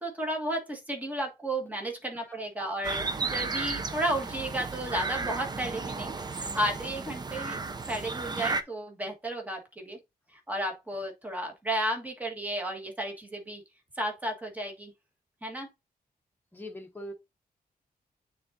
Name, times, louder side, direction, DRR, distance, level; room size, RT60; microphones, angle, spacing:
voice 1, 0.0-7.6 7.9-10.0 10.3-13.6 14.0-14.9 15.4-15.7, right 1 dB, 10° right, 1.5 m, -33 dB
sound 1, 2.8-8.6, right 4 dB, 25° right, 0.5 m, -34 dB
voice 2, 16.5-17.1, equal, 10° left, 1.3 m, -41 dB
9.1 x 3.8 x 2.7 m
wide cardioid pair, 160°, 16 cm